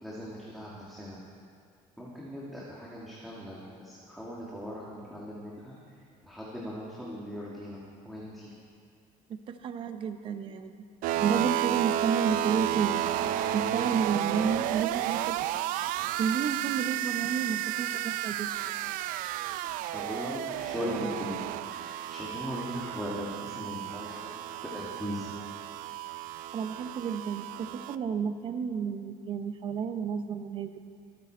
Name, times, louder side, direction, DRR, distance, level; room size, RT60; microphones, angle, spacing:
voice 1, 0.0-1.2 2.0-5.8 6.2-8.5 19.9-21.4 21.7-24.3 24.7-25.3, equal, ahead, -6 dB, 1.6 m, -39 dB
voice 2, 9.3-10.7 11.2-13.0 13.5-15.4 16.2-18.5 26.5-30.8, right 6 dB, 35° right, 9 dB, 0.7 m, -31 dB
sound 1, 11.0-28.0, right 12 dB, 70° right, 0.4 m, -32 dB
24.0 x 9.3 x 4.4 m, 2.3 s
cardioid pair, 180°, 15 cm